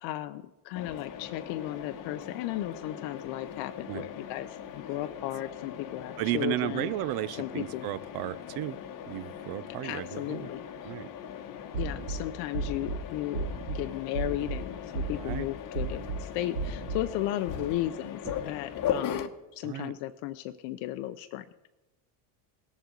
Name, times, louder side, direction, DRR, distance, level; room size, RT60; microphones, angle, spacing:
voice 1, 0.0-4.5 4.7-6.9 7.4-7.8 9.8-10.6 11.8-19.2 19.5-21.4, left 14 dB, 70° left, 9 dB, 0.7 m, -35 dB
Mechanisms, 0.7-19.3, left 9 dB, 45° left, 1.0 m, -39 dB
voice 2, 6.2-10.5 10.8-11.1 15.1-15.5 17.5-17.7 18.2-18.4 19.6-19.9, right 17 dB, 55° right, 19 dB, 0.5 m, -34 dB
sound 1, 11.7-12.2 12.5-13.0 13.3-13.8 14.1-14.6 14.9-15.4 15.7-16.2 16.5-17.0, right 4 dB, 75° right, 2.5 m, -33 dB
18.5 x 7.2 x 3.8 m, 1.0 s
supercardioid pair, 110°, 44 cm